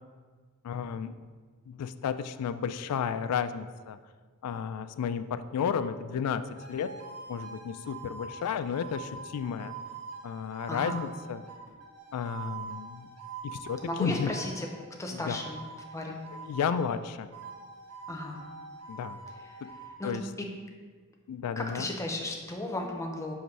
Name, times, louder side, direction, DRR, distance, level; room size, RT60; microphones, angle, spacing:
voice 1, 0.6-1.1 1.7-4.0 4.4-6.9 7.3-9.7 10.2-11.4 12.1-13.1 13.4-14.3 15.1-15.4 16.4-17.3 18.9-19.2 20.0-20.2 21.3-21.9, left 7 dB, 80° left, 12 dB, 0.3 m, -32 dB
sound 1, 6.6-14.9 15.3-17.0 17.3-20.0, right 5 dB, 85° right, 1.1 m, -44 dB
voice 2, 10.7-11.0 13.8-14.7 15.0-15.6 15.9-16.2 18.1-18.4 19.4-19.5 20.0-20.5 21.6-23.3, left 1 dB, 15° left, 1 dB, 0.6 m, -35 dB
5.9 x 3.1 x 5.2 m, 1.5 s
head